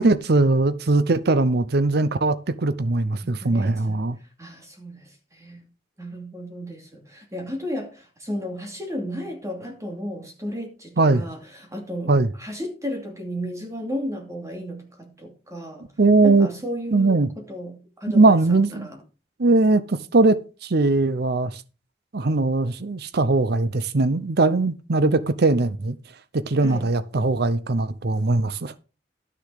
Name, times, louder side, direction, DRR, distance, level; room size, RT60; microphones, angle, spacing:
voice 1, 0.0-4.2 11.0-11.2 12.1-12.3 16.0-16.5 16.9-17.3 18.1-18.9 19.4-21.6 22.1-26.0 26.3-28.7, right 3 dB, 60° right, 0.7 m, -20 dB
voice 2, 3.2-3.9 4.4-5.6 6.0-12.1 12.4-15.9 16.2-18.9 26.6-26.9, equal, 20° right, 2.7 m, -34 dB
12.0 x 6.7 x 4.9 m
head